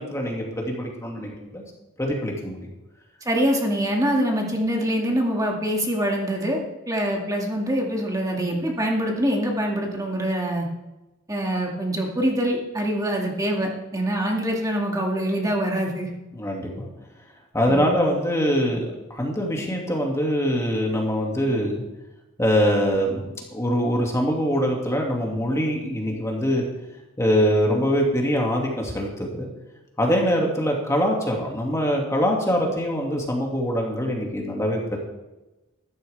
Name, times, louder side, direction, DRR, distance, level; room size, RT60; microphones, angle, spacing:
voice 1, 0.0-1.6 2.0-2.7 16.3-16.9 17.5-21.8 22.4-26.7 27.2-29.5 30.0-35.0, equal, 15° left, -1 dB, 2.4 m, -23 dB
voice 2, 3.3-6.6 6.9-10.7 11.3-16.1 17.7-17.9, equal, 15° right, -1 dB, 2.3 m, -24 dB
14.0 x 13.0 x 3.5 m, 1.0 s
head